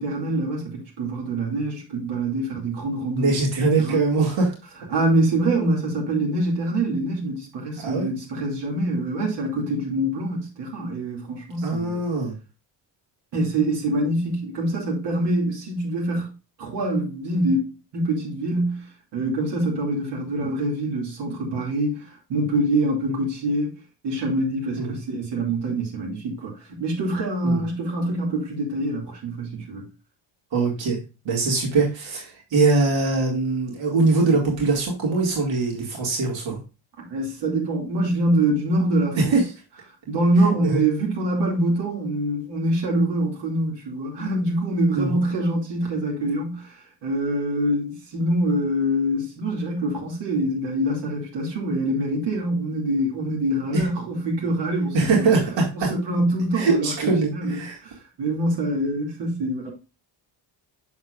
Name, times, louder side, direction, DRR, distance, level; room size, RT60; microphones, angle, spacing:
voice 1, 0.0-3.3 3.8-4.0 4.9-12.0 13.3-16.3 16.6-18.9 19.1-23.7 24.0-29.9 37.1-39.4 40.1-46.8 47.0-55.3 55.8-59.7, right 1 dB, 65° right, 2.5 m, -25 dB
voice 2, 3.1-4.5 7.8-8.1 11.6-12.3 23.1-23.2 24.8-25.0 27.4-27.6 30.5-31.0 31.2-36.6 39.2-39.4 40.6-40.8 44.9-45.2 53.7-53.9 54.9-55.9 56.5-57.8, right 3 dB, 85° right, 2.3 m, -22 dB
7.1 x 6.6 x 2.4 m
cardioid pair, 145°, 44 cm